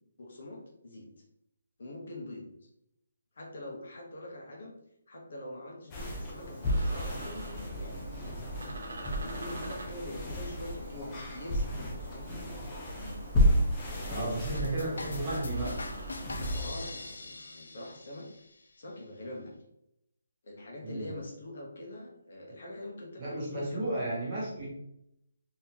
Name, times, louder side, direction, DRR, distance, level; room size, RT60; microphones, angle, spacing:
voice 1, 0.2-1.1 1.8-2.5 3.4-4.7 5.1-8.1 8.8-13.2 13.9-14.8 16.6-18.3 18.8-19.5 20.4-24.0, left 1 dB, 45° left, 0 dB, 0.9 m, -44 dB
sound 1, 5.9-16.7, equal, 10° left, 0.4 m, -33 dB
sound 2, 6.6-17.1, right 1 dB, 60° right, 0.8 m, -47 dB
voice 2, 14.1-15.8 20.8-21.1 23.2-24.7, right 1 dB, 15° right, -6 dB, 0.8 m, -33 dB
sound 3, 14.5-18.2, left 2 dB, 75° left, 0.5 m, -39 dB
3.8 x 2.8 x 2.8 m, 0.79 s
hypercardioid pair, 180°, 0 cm